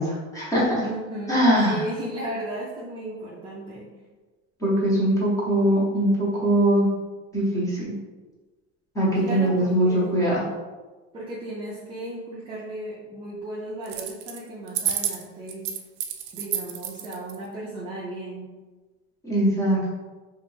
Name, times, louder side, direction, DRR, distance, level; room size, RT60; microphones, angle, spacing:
voice 1, 0.0-0.7 1.3-1.8 4.6-6.9 7.3-7.9 8.9-10.5 19.2-19.8, right 1 dB, 10° left, -7 dB, 0.9 m, -21 dB
voice 2, 0.8-3.9 9.2-10.1 11.1-15.7 16.3-18.5, right 1 dB, 15° right, -6 dB, 0.4 m, -35 dB
sound 1, 13.9-14.4 14.7-17.4, right 10 dB, 70° right, 0.5 m, -29 dB
3.2 x 2.5 x 3.2 m, 1.3 s
cardioid pair, 160°, 32 cm